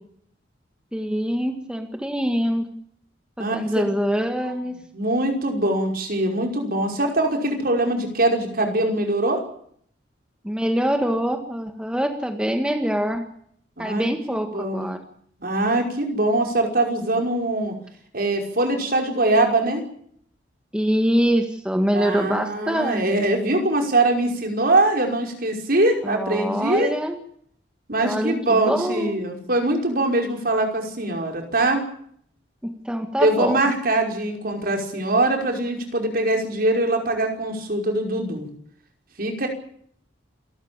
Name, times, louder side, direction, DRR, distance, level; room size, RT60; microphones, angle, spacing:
voice 1, 0.9-2.7 3.4-4.8 10.4-13.2 13.8-15.0 20.7-23.3 26.0-27.2 28.0-29.2 32.6-33.6, equal, 5° right, 5 dB, 1.8 m, -24 dB
voice 2, 3.4-3.8 4.4-4.5 4.9-9.4 13.8-14.0 14.5-14.9 15.4-17.7 18.1-19.8 21.9-26.9 27.9-31.8 33.2-38.5 39.2-39.5, right 2 dB, 50° right, 3 dB, 5.4 m, -22 dB
28.5 x 13.5 x 8.9 m, 0.66 s
head